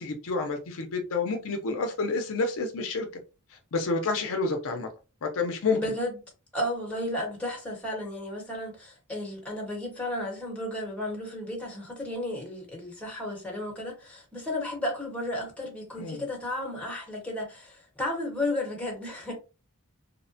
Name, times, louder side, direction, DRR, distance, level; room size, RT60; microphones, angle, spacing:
voice 1, 0.0-3.1 3.7-4.9 5.2-5.8 16.0-16.2, left 3 dB, 65° left, 0.5 m, -29 dB
voice 2, 5.7-6.2 6.5-19.3, left 1 dB, 5° left, 1.0 m, -33 dB
2.8 x 2.1 x 2.6 m
head